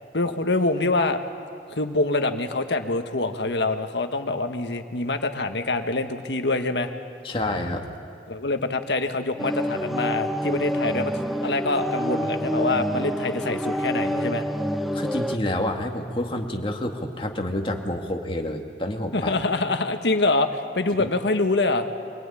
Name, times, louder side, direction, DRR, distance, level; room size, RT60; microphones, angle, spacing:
voice 1, 0.1-1.2 1.7-6.9 8.3-11.1 11.4-14.4 19.1-21.9, left 2 dB, 75° left, 7 dB, 1.5 m, -25 dB
voice 2, 7.2-7.8 14.9-19.3 21.0-21.1, left 1 dB, 30° left, 3 dB, 1.9 m, -28 dB
sound 1, 9.4-15.4, equal, ahead, 0.6 m, -27 dB
25.0 x 18.5 x 9.8 m, 2.4 s
head